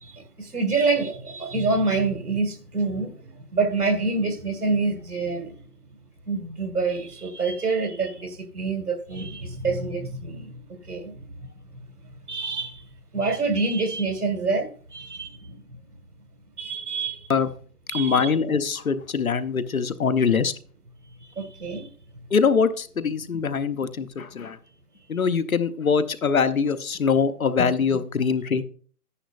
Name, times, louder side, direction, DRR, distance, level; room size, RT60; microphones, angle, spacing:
voice 1, 0.0-5.5 6.3-11.5 12.3-12.8 13.1-15.6 16.6-17.3 17.9-18.3 21.4-21.9, right 3 dB, 80° right, 2.0 m, -27 dB
voice 2, 17.9-20.5 22.3-24.6 25.1-28.6, left 5 dB, 65° left, 0.9 m, -23 dB
10.5 x 10.0 x 2.5 m
figure-of-eight pair, 165°, 45 cm